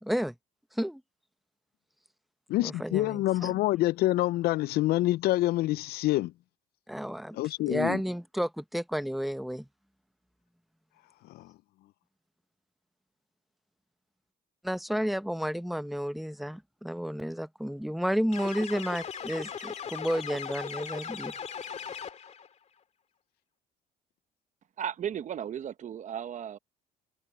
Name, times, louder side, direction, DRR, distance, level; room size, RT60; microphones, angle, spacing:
voice 1, 0.0-0.3 0.7-1.0 2.6-3.6 6.9-9.7 14.6-21.3, equal, ahead, 1.0 m, -32 dB
voice 2, 2.5-6.3 7.3-8.0 11.3-11.5, left 16 dB, 70° left, 0.4 m, -27 dB
sound 1, 18.3-22.5, left 7 dB, 40° left, 2.0 m, -38 dB
voice 3, 24.8-26.6, right 9 dB, 45° right, 1.0 m, -35 dB
cardioid pair, 110°, 17 cm